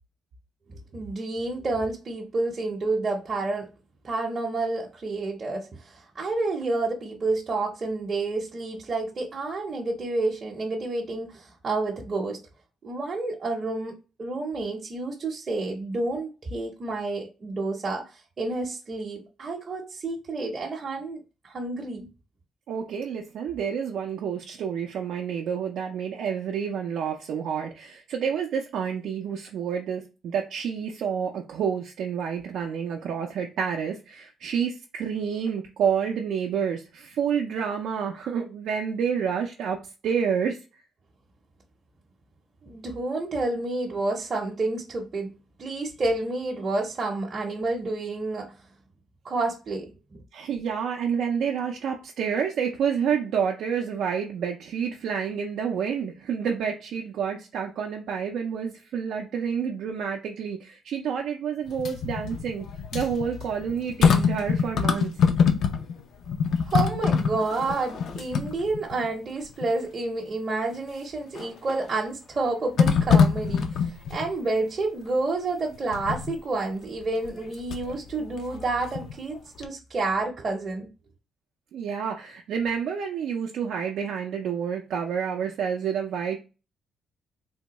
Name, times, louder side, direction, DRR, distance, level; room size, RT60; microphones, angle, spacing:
voice 1, 0.7-3.7 4.0-12.4 12.8-22.1 42.6-45.3 45.6-48.6 49.2-50.2 66.6-80.9, right 3 dB, 40° right, 0.7 m, -29 dB
voice 2, 22.7-39.8 40.0-40.6 50.3-62.7 62.9-65.1 81.7-86.4, right 7 dB, 75° right, 0.4 m, -29 dB
sound 1, 61.7-66.0 66.3-69.1 69.6-69.7 71.3-71.8 72.8-74.3 75.9-76.3 77.2-78.0 78.4-79.4 79.6-79.7, left 6 dB, 65° left, 0.5 m, -24 dB
3.4 x 2.2 x 2.9 m
cardioid pair, 90°, 0 cm